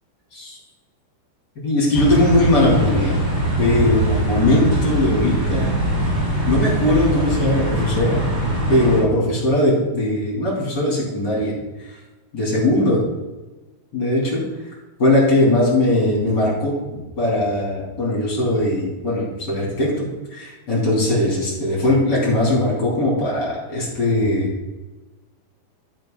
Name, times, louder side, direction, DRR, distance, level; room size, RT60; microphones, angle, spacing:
voice 1, 1.6-3.1 3.6-5.7 6.5-8.2 8.7-11.5 11.9-12.0 12.3-13.0 13.9-14.4 15.0-24.5, left 1 dB, 25° left, -5 dB, 2.6 m, -19 dB
sound 1, 1.9-9.0, right 1 dB, 15° right, 1.6 m, -22 dB
10.5 x 6.1 x 3.9 m, 1.1 s
omnidirectional pair, 5.7 m